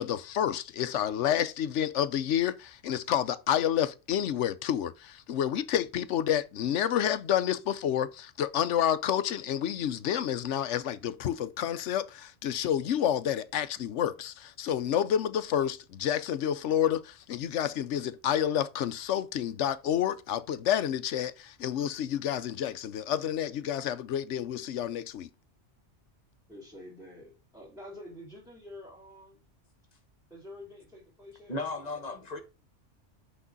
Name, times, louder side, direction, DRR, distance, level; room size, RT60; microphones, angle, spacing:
voice 1, 0.0-25.3, left 10 dB, 75° left, 1.0 m, -29 dB
voice 2, 26.5-29.4 30.3-32.0, left 1 dB, ahead, 3.3 m, -48 dB
voice 3, 31.5-32.4, left 2 dB, 35° left, 1.4 m, -35 dB
6.0 x 5.9 x 3.9 m
omnidirectional pair, 1.3 m